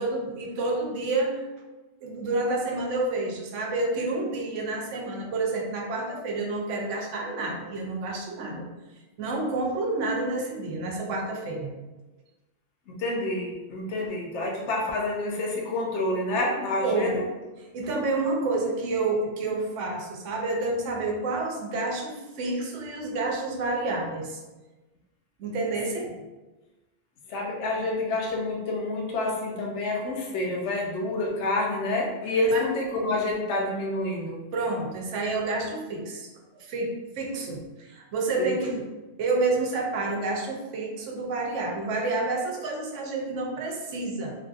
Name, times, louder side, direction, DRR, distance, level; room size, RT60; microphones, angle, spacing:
voice 1, 0.0-1.4 2.0-8.7 9.2-11.7 16.8-17.2 17.6-24.4 25.4-26.1 32.5-32.7 34.5-36.3 36.5-38.8 39.2-44.4, right 2 dB, 85° right, 1 dB, 1.0 m, -29 dB
voice 2, 12.9-17.3 27.3-34.4 38.4-38.5, left 2 dB, 75° left, -1 dB, 0.9 m, -28 dB
3.3 x 2.6 x 2.4 m, 1.1 s
omnidirectional pair, 1.2 m